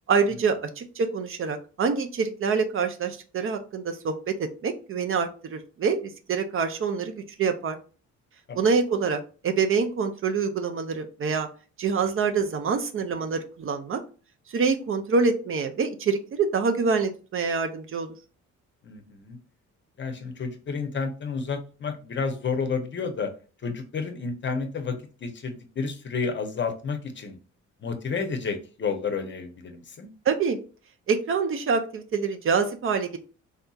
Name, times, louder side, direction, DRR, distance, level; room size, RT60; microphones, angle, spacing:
voice 1, 0.1-7.8 8.6-11.5 11.8-14.0 14.5-18.1 30.3-30.6 31.1-33.2, right 5 dB, 45° right, 7 dB, 0.5 m, -26 dB
voice 2, 18.8-19.4 20.0-23.3 23.6-25.0 25.2-27.4 27.8-30.1, left 5 dB, 40° left, 7 dB, 0.7 m, -31 dB
3.4 x 2.7 x 2.3 m, 0.36 s
cardioid pair, 90°, 30 cm